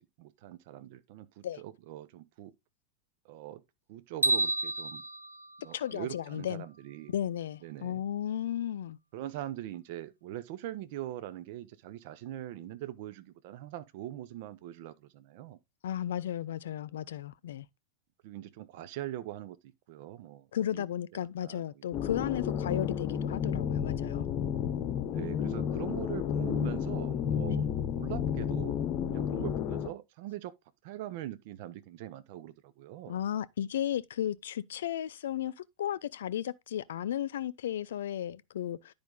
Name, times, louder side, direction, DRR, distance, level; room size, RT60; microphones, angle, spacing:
voice 1, 0.0-2.5 3.2-3.6 3.9-5.0 5.6-7.1 7.6-8.0 9.1-15.6 18.2-20.8 21.4-21.8 25.0-30.5 30.8-33.2, right 13 dB, 50° right, 0.8 m, -42 dB
sound 1, 4.2-6.5, right 2 dB, 85° right, 0.6 m, -31 dB
voice 2, 5.7-6.7 7.1-9.0 15.8-17.7 20.5-24.2 27.5-27.6 29.4-29.5 33.1-38.9, left 11 dB, 60° left, 0.5 m, -34 dB
sound 2, 21.9-29.9, left 8 dB, 40° left, 0.9 m, -31 dB
10.5 x 5.2 x 3.7 m
figure-of-eight pair, 90°, 0 cm